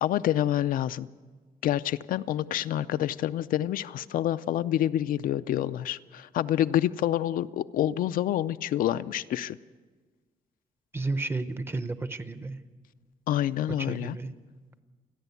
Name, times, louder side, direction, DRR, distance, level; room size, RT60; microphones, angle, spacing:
voice 1, 0.0-1.1 1.6-9.6 13.3-14.2, left 12 dB, 70° left, 12 dB, 0.5 m, -27 dB
voice 2, 10.9-12.6 13.9-14.3, right 3 dB, 15° right, 12 dB, 0.7 m, -32 dB
29.0 x 11.0 x 8.2 m, 1.4 s
cardioid pair, 170°, 15 cm